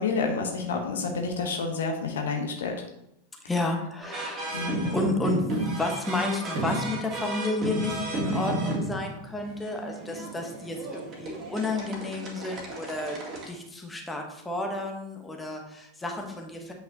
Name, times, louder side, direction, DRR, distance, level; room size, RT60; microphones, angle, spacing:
voice 1, 0.0-2.8 4.5-4.8, left 4 dB, 60° left, 3 dB, 1.1 m, -29 dB
voice 2, 3.4-4.5 4.9-13.2 13.5-16.7, left 2 dB, 10° left, 2 dB, 1.1 m, -31 dB
sound 1, 4.0-13.5, right 1 dB, 30° right, 2.0 m, -32 dB
8.3 x 5.5 x 2.9 m, 0.80 s
figure-of-eight pair, 90°, 0 cm